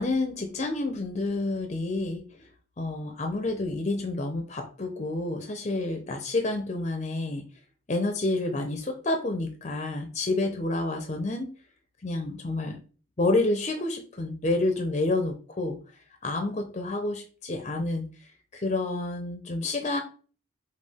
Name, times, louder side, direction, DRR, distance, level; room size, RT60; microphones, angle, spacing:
voice 1, 0.0-2.2 2.8-7.4 7.9-11.5 12.0-12.8 13.2-15.8 16.2-18.1 18.5-20.0, left 2 dB, 35° left, 4 dB, 0.6 m, -29 dB
5.2 x 2.4 x 3.5 m, 0.38 s
head